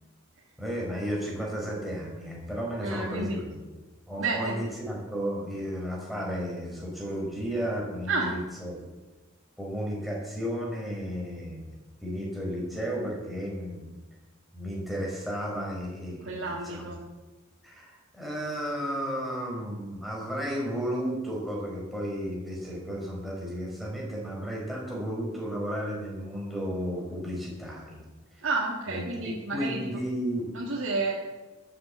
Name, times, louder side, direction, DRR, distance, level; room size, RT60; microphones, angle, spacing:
voice 1, 0.6-3.6 4.1-8.8 9.6-13.9 14.5-16.9 17.6-28.0 28.4-28.5 28.9-30.5, equal, ahead, -3 dB, 4.5 m, -33 dB
voice 2, 2.8-3.4 4.2-4.6 8.1-8.3 16.2-17.0 28.4-29.8 30.5-31.1, right 3 dB, 65° right, -4 dB, 2.2 m, -30 dB
13.0 x 8.8 x 7.8 m, 1.2 s
head